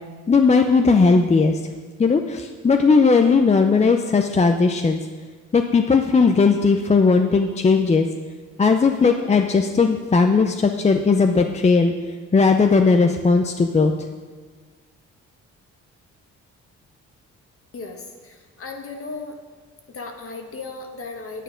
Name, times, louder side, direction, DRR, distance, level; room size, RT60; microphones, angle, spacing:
voice 1, 0.3-1.6 2.0-5.0 5.5-8.1 8.6-11.9 12.3-13.9, left 4 dB, 20° left, 5 dB, 0.5 m, -17 dB
voice 2, 17.7-19.4 19.9-21.4, left 3 dB, 45° left, 3 dB, 1.5 m, -36 dB
9.2 x 8.6 x 5.1 m, 1.4 s
cardioid pair, 90°, 30 cm